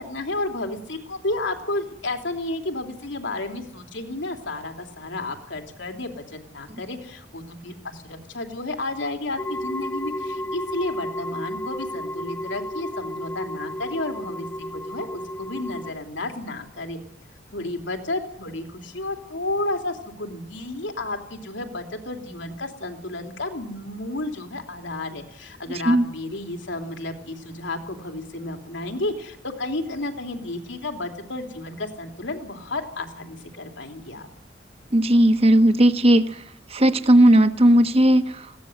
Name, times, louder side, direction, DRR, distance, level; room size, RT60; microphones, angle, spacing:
voice 1, 0.0-17.0 17.5-34.3, left 2 dB, 90° left, 4 dB, 3.2 m, -32 dB
sound 1, 9.4-15.9, equal, 10° left, 0.9 m, -32 dB
voice 2, 34.9-36.4 36.7-38.6, right 1 dB, 35° right, 10 dB, 1.2 m, -16 dB
20.5 x 16.5 x 8.0 m, 0.70 s
head